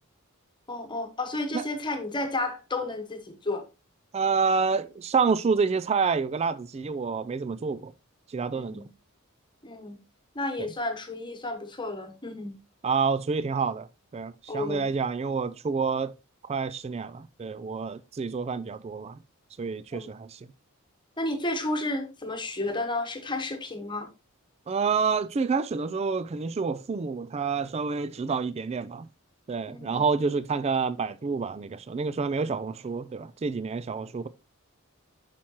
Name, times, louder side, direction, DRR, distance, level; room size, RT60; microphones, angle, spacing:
voice 1, 0.7-3.6 8.5-8.9 9.6-10.0 10.3-12.5 14.5-14.9 19.9-20.1 21.2-24.1 29.7-30.1, left 2 dB, 20° left, 1.2 m, -32 dB
voice 2, 4.1-7.9 8.3-8.8 12.8-13.9 14.1-16.1 16.4-19.2 19.6-20.4 24.7-29.1 29.5-34.3, right 5 dB, 30° right, 0.3 m, -28 dB
8.6 x 5.8 x 3.0 m
head